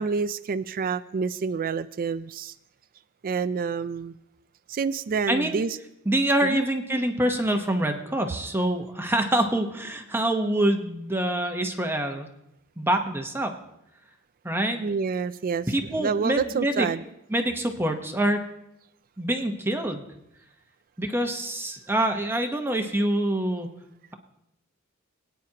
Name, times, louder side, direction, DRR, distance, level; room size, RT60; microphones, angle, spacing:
voice 1, 0.0-2.5 3.2-4.1 4.7-5.8 6.4-6.6 14.8-17.0, right 5 dB, 40° right, 13 dB, 0.4 m, -28 dB
voice 2, 5.3-5.6 6.1-12.3 12.8-13.5 14.4-14.8 15.7-16.9 17.3-18.4 19.2-20.0 21.0-23.7, right 1 dB, 10° right, 5 dB, 1.0 m, -25 dB
23.5 x 9.2 x 2.9 m, 0.82 s
head